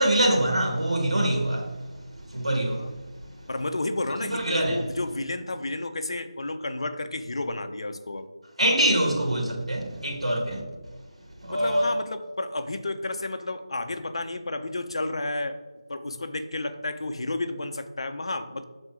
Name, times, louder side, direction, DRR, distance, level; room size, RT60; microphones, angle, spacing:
voice 1, 0.0-1.7 2.3-2.9 4.2-4.8 8.6-10.6 11.4-11.9, right 1 dB, 80° right, 2.1 m, -24 dB
voice 2, 3.5-8.3 11.5-15.6 15.9-18.6, left 2 dB, 60° left, 0.7 m, -31 dB
6.2 x 4.1 x 4.9 m
figure-of-eight pair, 160°, 3 cm